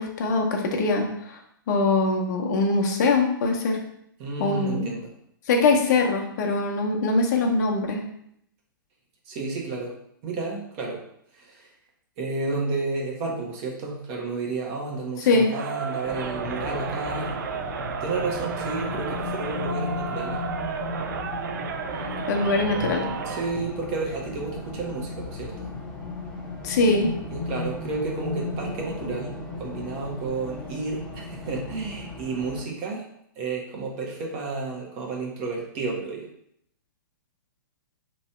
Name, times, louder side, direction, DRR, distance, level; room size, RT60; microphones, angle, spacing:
voice 1, 0.0-1.4 1.7-3.8 4.4-4.9 5.5-8.0 15.2-15.5 22.3-23.1 26.6-27.1, left 3 dB, 50° left, 2 dB, 0.8 m, -22 dB
voice 2, 4.2-5.1 9.2-9.9 10.2-11.0 11.3-11.7 12.2-17.4 18.0-20.4 23.2-25.7 27.3-33.1 33.4-36.3, right 3 dB, 40° right, -1 dB, 1.0 m, -31 dB
Crowd, 15.5-23.6, right 6 dB, 60° right, 0.4 m, -33 dB
Race car auto racing, 16.0-32.6, left 3 dB, 5° left, 0.9 m, -35 dB
3.0 x 2.7 x 4.3 m, 0.72 s
hypercardioid pair, 120°, 12 cm